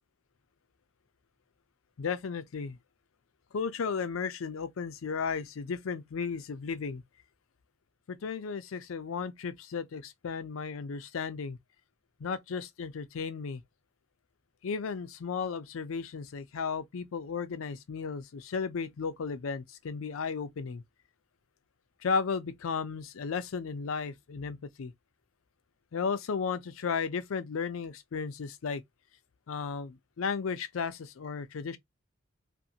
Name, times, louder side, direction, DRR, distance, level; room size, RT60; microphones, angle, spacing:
voice 1, 2.0-2.8 3.5-7.0 8.1-11.6 12.2-13.6 14.6-20.8 22.0-24.9 25.9-28.8 29.5-31.8, left 5 dB, 85° left, 0.5 m, -34 dB
2.5 x 2.4 x 2.7 m
head